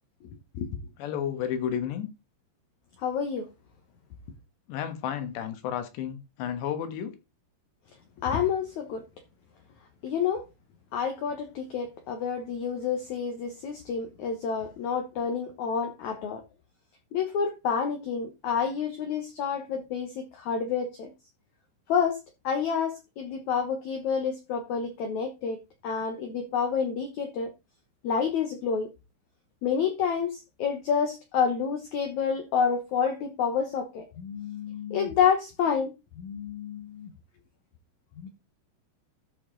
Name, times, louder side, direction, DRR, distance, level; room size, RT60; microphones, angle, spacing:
voice 1, 1.0-2.1 4.7-7.2, left 9 dB, 90° left, 3.6 m, -32 dB
voice 2, 3.0-3.5 8.2-9.0 10.0-10.4 10.9-16.4 17.1-21.1 21.9-22.2 22.4-27.5 28.0-28.9 29.6-37.1 38.2-38.3, left 6 dB, 65° left, 1.9 m, -29 dB
13.5 x 5.2 x 3.8 m
omnidirectional pair, 4.8 m